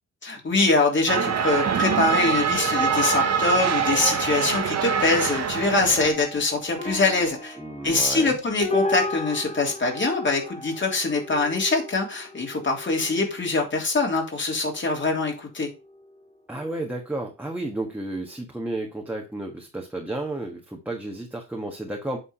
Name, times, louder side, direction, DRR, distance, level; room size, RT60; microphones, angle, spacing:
voice 1, 0.2-7.6 7.8-15.7, left 3 dB, 35° left, 1 dB, 3.1 m, -24 dB
sound 1, 1.1-6.1, right 7 dB, 55° right, 1.2 m, -24 dB
sound 2, 1.6-1.7 2.8-13.8 14.5-15.3 15.7-16.2 17.8-17.9, left 1 dB, 20° left, 1.6 m, -34 dB
voice 2, 7.6-8.4 16.5-22.2, right 2 dB, 5° right, -1 dB, 1.5 m, -32 dB
8.7 x 3.7 x 4.9 m, 0.29 s
cardioid pair, 95°, 33 cm